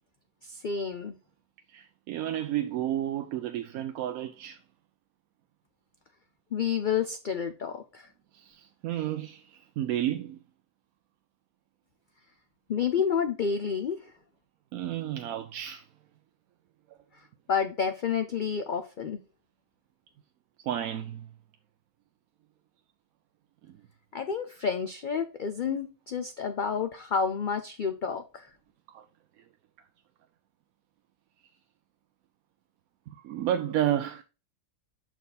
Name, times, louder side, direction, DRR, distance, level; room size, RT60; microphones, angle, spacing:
voice 1, 0.4-1.2 6.5-8.1 12.7-14.1 17.5-19.2 24.1-28.5, left 6 dB, 60° left, 0.5 m, -30 dB
voice 2, 1.7-4.6 8.3-10.4 14.7-15.9 20.6-21.3 23.6-23.8 25.7-25.8 28.9-29.0 29.4-29.5 33.1-34.2, right 11 dB, 90° right, 1.0 m, -32 dB
6.7 x 4.6 x 4.0 m
omnidirectional pair, 1.4 m